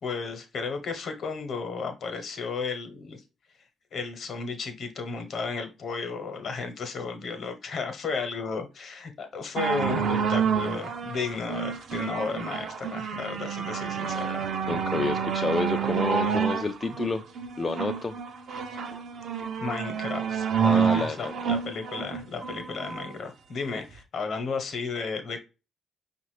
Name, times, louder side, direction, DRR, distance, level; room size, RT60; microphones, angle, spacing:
voice 1, 0.0-3.2 3.9-14.4 19.6-25.4, left 4 dB, 60° left, 6 dB, 1.0 m, -33 dB
sound 1, 9.6-23.1 23.9-24.0, right 7 dB, 65° right, 0.6 m, -29 dB
voice 2, 14.7-17.2 17.6-18.2 20.6-21.3, left 3 dB, 35° left, 7 dB, 0.3 m, -29 dB
5.4 x 2.5 x 3.2 m, 0.30 s
hypercardioid pair, 50°, 0 cm